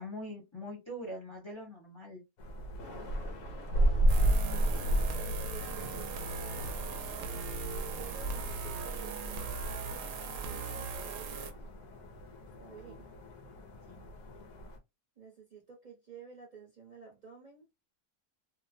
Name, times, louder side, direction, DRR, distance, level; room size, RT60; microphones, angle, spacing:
voice 1, 0.0-2.2 12.8-13.0 13.9-14.0, equal, 25° left, 0.8 m, -43 dB
sound 1, 2.4-14.8, right 1 dB, 70° left, 1.0 m, -34 dB
Thunder, 2.6-8.9, left 2 dB, 85° left, 1.4 m, -48 dB
voice 2, 2.9-3.5 4.2-6.8 7.8-11.7 12.6-13.1 15.2-17.7, right 5 dB, 35° right, 0.8 m, -52 dB
sound 2, 4.1-11.5, right 4 dB, 65° right, 0.9 m, -39 dB
3.0 x 2.2 x 2.5 m
omnidirectional pair, 1.6 m